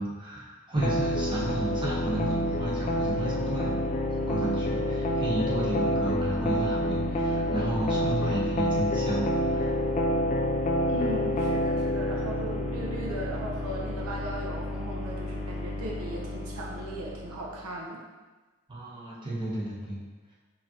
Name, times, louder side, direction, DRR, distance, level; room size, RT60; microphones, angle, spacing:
voice 1, 0.0-3.8 4.3-9.7 18.7-20.0, right 1 dB, 20° right, -7 dB, 1.0 m, -32 dB
sound 1, 0.8-17.5, left 1 dB, 30° left, 0.3 m, -28 dB
voice 2, 10.9-18.0, right 1 dB, 85° right, -2 dB, 0.7 m, -37 dB
4.8 x 2.9 x 2.8 m, 1.2 s
head